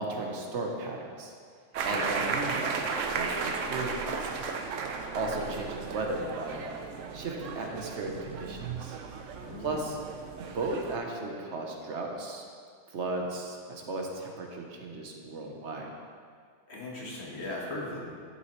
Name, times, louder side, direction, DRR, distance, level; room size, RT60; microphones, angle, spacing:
voice 1, 0.0-1.3 1.8-4.5 5.1-6.6 7.1-9.0 9.6-10.0 10.4-12.4 12.9-15.9, right 2 dB, 70° right, 1 dB, 1.1 m, -35 dB
sound 1, 1.7-11.0, right 5 dB, 90° right, 1.0 m, -35 dB
voice 2, 9.3-9.8 16.7-18.0, left 2 dB, 60° left, -4 dB, 1.6 m, -38 dB
11.0 x 6.1 x 3.1 m, 2.1 s
omnidirectional pair, 1.3 m